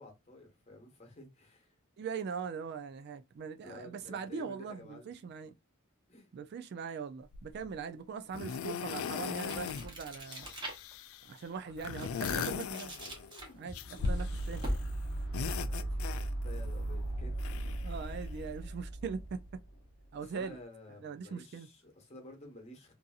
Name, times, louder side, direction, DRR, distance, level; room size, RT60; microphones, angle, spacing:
voice 1, 0.0-1.7 3.6-5.3 6.1-6.3 15.4-17.5 20.2-22.9, left 1 dB, 30° left, 1.0 m, -52 dB
voice 2, 2.0-5.5 6.3-10.5 11.2-13.0 13.5-14.6 17.8-19.4 20.1-20.6 21.0-21.7, right 6 dB, 50° right, 0.3 m, -41 dB
sound 1, 7.3-7.7 8.3-9.9 10.2-11.3 11.8-13.3 13.7-14.8 15.1-16.6 17.4-18.4 19.3-19.4, left 6 dB, 70° left, 0.3 m, -39 dB
sound 2, 9.4-11.1 11.6-15.1, equal, 25° right, 0.8 m, -41 dB
sound 3, 11.8-19.9, right 1 dB, 50° left, 0.7 m, -38 dB
2.6 x 2.6 x 2.3 m
head